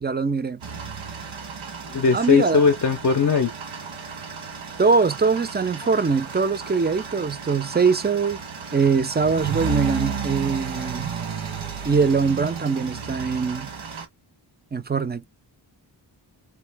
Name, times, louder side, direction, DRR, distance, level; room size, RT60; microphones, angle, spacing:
voice 1, 0.0-0.6 2.1-2.6 4.8-8.4 8.7-11.1 11.8-13.7 14.7-15.3, right 5 dB, 25° right, 0.4 m, -22 dB
sound 1, 0.6-14.1, right 6 dB, 90° right, 1.3 m, -33 dB
voice 2, 1.9-3.5, left 5 dB, 40° left, 0.5 m, -19 dB
4.5 x 2.7 x 3.4 m
wide cardioid pair, 155°, 46 cm